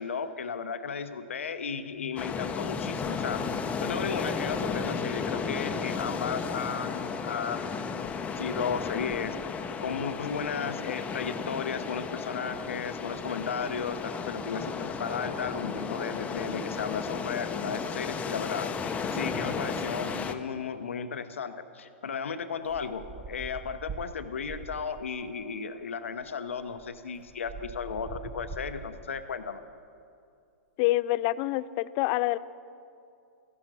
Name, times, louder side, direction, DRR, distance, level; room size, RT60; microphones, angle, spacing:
voice 1, 0.0-3.4 3.8-9.4 9.8-18.7 19.1-29.6, left 6 dB, 85° left, 10 dB, 0.8 m, -34 dB
Medium Rolling Surf, 2.2-20.3, left 5 dB, 20° left, 0.8 m, -34 dB
sound 1, 22.7-25.2 26.2-26.3 26.6-29.2, right 4 dB, 20° right, 0.9 m, -43 dB
voice 2, 30.8-32.4, left 17 dB, 45° left, 17 dB, 0.4 m, -26 dB
15.0 x 11.0 x 6.1 m, 2.5 s
hypercardioid pair, 110°, 7 cm